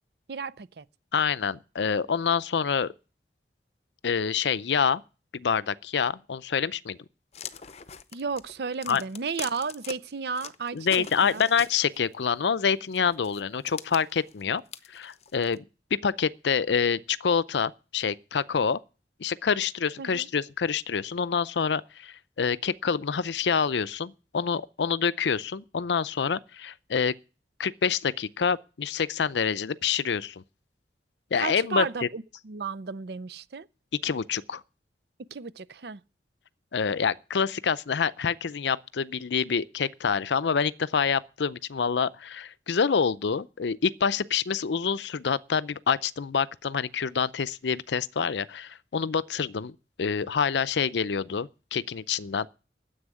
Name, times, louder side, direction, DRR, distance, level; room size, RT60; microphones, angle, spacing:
voice 1, 0.3-0.8 8.1-11.4 20.0-20.3 31.4-33.7 35.3-36.0, right 5 dB, 65° right, 0.6 m, -33 dB
voice 2, 1.1-2.9 4.0-5.0 5.3-7.0 8.9-9.0 10.7-14.6 14.9-15.6 16.0-18.8 19.2-27.1 27.6-30.4 31.3-32.1 34.0-34.6 36.7-49.7 50.0-52.5, left 6 dB, 85° left, 0.5 m, -27 dB
sound 1, 7.3-9.9 10.4-12.1 12.9-15.6, left 8 dB, 35° left, 0.7 m, -42 dB
9.9 x 7.9 x 9.6 m
head